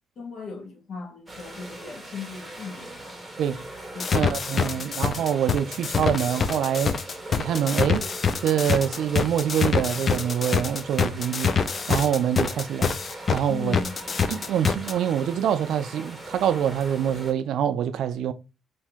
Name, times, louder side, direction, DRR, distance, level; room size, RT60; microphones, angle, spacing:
voice 1, 0.2-3.1 3.9-4.3 4.5-5.0 13.5-14.0, left 4 dB, 60° left, 1.0 m, -38 dB
sound 1, 1.3-17.3, right 1 dB, 10° right, 1.0 m, -40 dB
sound 2, 4.0-13.4 13.7-14.9, left 6 dB, 40° left, 0.3 m, -25 dB
voice 2, 4.1-6.9 7.4-8.1 8.4-11.5 11.9-13.0 13.3-13.8 14.3-18.3, right 9 dB, 75° right, 0.3 m, -25 dB
2.8 x 2.6 x 3.5 m
cardioid pair, 115°, 0 cm